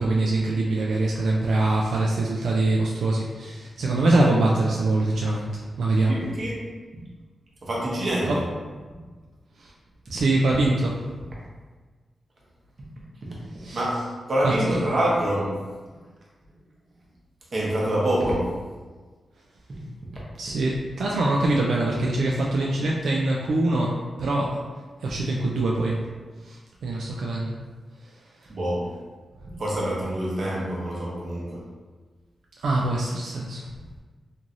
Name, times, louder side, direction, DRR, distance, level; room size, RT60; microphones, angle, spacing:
voice 1, 0.0-6.2 8.3-8.4 9.6-9.7 10.1-11.1 13.6-13.8 14.4-14.8 20.4-24.6 25.0-26.1 26.4-27.5 28.0-28.1 32.6-33.6, right 2 dB, 85° right, -3 dB, 0.3 m, -24 dB
voice 2, 6.1-6.7 7.6-8.4 13.7-15.8 17.5-18.6 28.5-28.9 29.6-31.7, right 1 dB, 50° right, -5 dB, 0.8 m, -26 dB
3.1 x 2.5 x 2.5 m, 1.4 s
wide cardioid pair, 130°, 0 cm